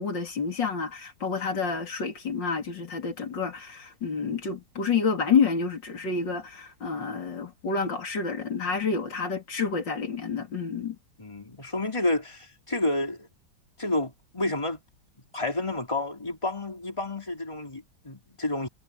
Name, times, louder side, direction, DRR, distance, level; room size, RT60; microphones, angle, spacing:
voice 1, 0.0-11.0, left 5 dB, 90° left, 3.9 m, -29 dB
voice 2, 11.2-13.3 13.8-14.8 15.3-18.7, left 2 dB, 15° left, 3.7 m, -30 dB
omnidirectional pair, 1.9 m